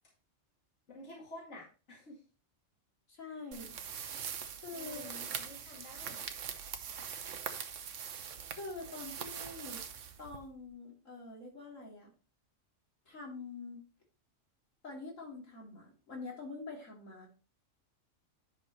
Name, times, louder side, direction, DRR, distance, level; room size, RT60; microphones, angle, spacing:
voice 1, 0.9-2.2 3.2-3.3 4.7-6.2, left 2 dB, 65° left, -3 dB, 2.6 m, -50 dB
voice 2, 3.1-3.7 4.6-5.0 8.5-9.8 10.2-12.1 13.1-13.8 14.8-17.3, left 3 dB, 80° left, -2 dB, 3.2 m, -45 dB
sound 1, 3.5-10.7, right 7 dB, 75° right, 1.2 m, -43 dB
10.5 x 5.8 x 2.9 m, 0.34 s
omnidirectional pair, 1.3 m